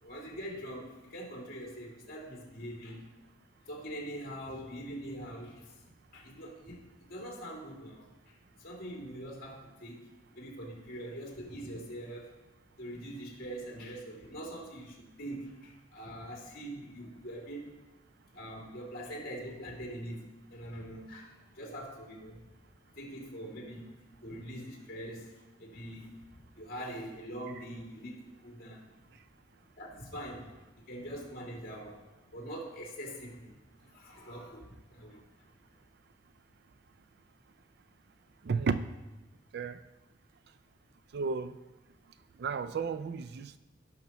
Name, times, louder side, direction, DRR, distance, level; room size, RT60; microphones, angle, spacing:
voice 1, 0.0-3.1 3.7-5.7 6.1-6.8 7.1-8.1 8.6-10.0 10.3-12.3 12.8-17.7 18.3-20.2 20.5-22.4 22.9-25.3 25.6-26.2 26.5-28.8 29.8-32.0 32.3-33.5 33.8-35.2, right 1 dB, 50° left, -3 dB, 2.5 m, -43 dB
voice 2, 38.4-38.8 39.5-39.8 41.1-41.6 42.4-43.6, right 5 dB, 55° right, 12 dB, 0.4 m, -32 dB
16.0 x 5.9 x 3.0 m, 1.1 s
head